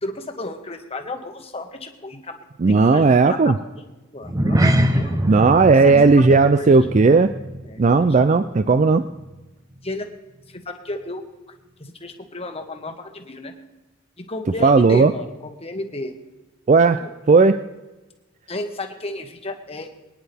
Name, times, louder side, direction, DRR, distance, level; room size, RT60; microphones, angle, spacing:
voice 1, 0.0-2.4 2.7-3.8 4.1-5.2 5.8-6.8 7.6-7.8 8.1-8.5 9.8-10.1 10.5-11.2 11.8-13.5 14.3-16.1 17.0-17.1 18.5-19.9, left 2 dB, 30° left, 5 dB, 1.3 m, -33 dB
voice 2, 2.6-3.5 5.2-7.3 7.8-9.1 14.6-15.1 16.7-17.0 17.3-17.6, right 4 dB, 35° right, 11 dB, 0.4 m, -15 dB
sound 1, 4.2-8.9 9.1-9.4 9.9-10.0, equal, 15° right, 0.8 m, -24 dB
24.0 x 9.9 x 3.5 m, 1.1 s
head